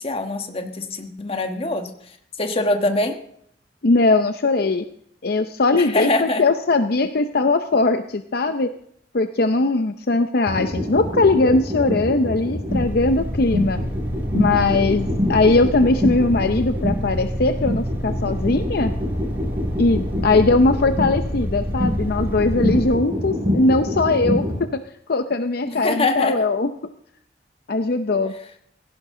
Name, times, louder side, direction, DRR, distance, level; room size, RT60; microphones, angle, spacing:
voice 1, 0.0-1.9 2.4-3.2 5.8-6.4 25.7-26.4, left 2 dB, 35° left, 5 dB, 1.5 m, -23 dB
voice 2, 3.8-4.8 5.2-8.7 9.1-13.8 14.3-18.9 19.8-24.5 24.7-24.8 25.1-26.7 27.7-28.3, left 3 dB, 60° left, 9 dB, 0.6 m, -20 dB
sound 1, 10.4-24.6, left 1 dB, 35° right, 5.9 m, -26 dB
sound 2, 12.7-23.0, equal, 10° right, 2.1 m, -29 dB
16.5 x 15.5 x 3.8 m, 0.70 s
head